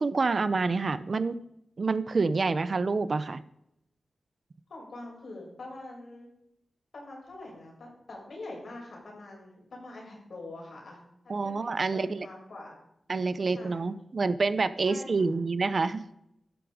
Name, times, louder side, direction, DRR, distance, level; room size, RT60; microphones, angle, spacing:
voice 1, 0.0-1.4 1.8-3.4 11.3-12.3 13.1-16.1, right 4 dB, 45° right, 15 dB, 0.6 m, -27 dB
voice 2, 4.7-6.3 6.9-12.8 13.5-13.8 14.8-15.2, left 2 dB, 60° left, -1 dB, 7.0 m, -44 dB
15.0 x 12.5 x 5.1 m, 0.79 s
wide cardioid pair, 170°, 0 cm